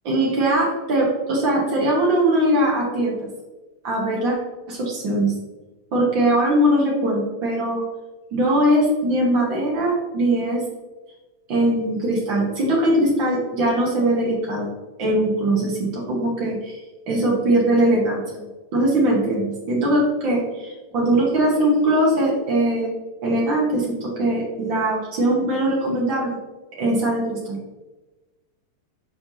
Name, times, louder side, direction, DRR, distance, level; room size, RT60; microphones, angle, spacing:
voice 1, 0.0-3.3 3.8-4.4 4.7-5.3 5.9-7.8 8.3-10.6 11.5-14.7 15.0-16.8 17.1-18.5 18.7-22.9 23.2-26.4 26.8-27.6, right 1 dB, 75° right, -5 dB, 1.0 m, -21 dB
7.7 x 5.4 x 2.8 m, 1.2 s
omnidirectional pair, 4.2 m